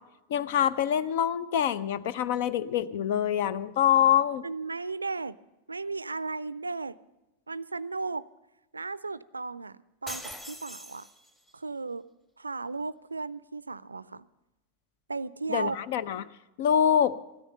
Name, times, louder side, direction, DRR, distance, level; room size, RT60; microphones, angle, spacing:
voice 1, 0.3-4.4 15.5-16.2 16.6-17.2, left 9 dB, 50° left, 17 dB, 0.6 m, -25 dB
voice 2, 4.4-5.4 5.7-7.0 7.5-8.3 8.7-11.1 11.5-12.1 12.4-14.3 15.1-15.8, right 3 dB, 80° right, 19 dB, 0.4 m, -35 dB
sound 1, 10.1-11.5, equal, 15° left, 1.7 m, -42 dB
15.5 x 13.5 x 5.5 m, 0.99 s
figure-of-eight pair, 90°, 0 cm